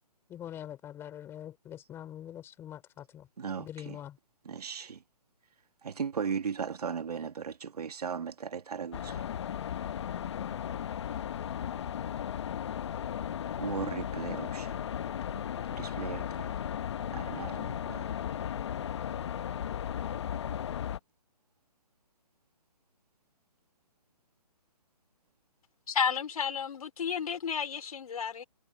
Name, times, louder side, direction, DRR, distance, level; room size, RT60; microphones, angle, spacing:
voice 1, 0.3-3.3 3.6-4.2, left 10 dB, 10° left, 5.4 m, -44 dB
voice 2, 3.4-4.0 4.4-5.0 5.8-9.2 13.6-14.8 15.3-15.4 15.8-16.5 17.0-18.1, right 6 dB, 75° right, 2.2 m, -37 dB
sound 1, 8.9-21.0, left 9 dB, 45° left, 1.1 m, -36 dB
voice 3, 25.9-28.4, left 6 dB, 65° left, 3.7 m, -32 dB
hypercardioid pair, 160°, 20 cm